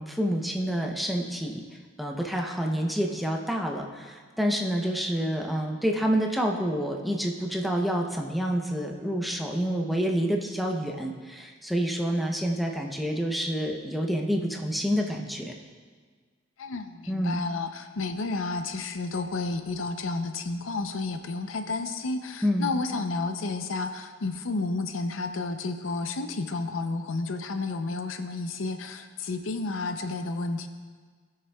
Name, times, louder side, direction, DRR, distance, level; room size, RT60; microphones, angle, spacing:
voice 1, 0.0-1.6 2.0-15.5 17.1-17.4 22.4-22.7, equal, ahead, 0 dB, 0.7 m, -28 dB
voice 2, 16.6-30.7, left 3 dB, 80° left, 8 dB, 0.6 m, -31 dB
17.0 x 6.6 x 2.3 m, 1.5 s
head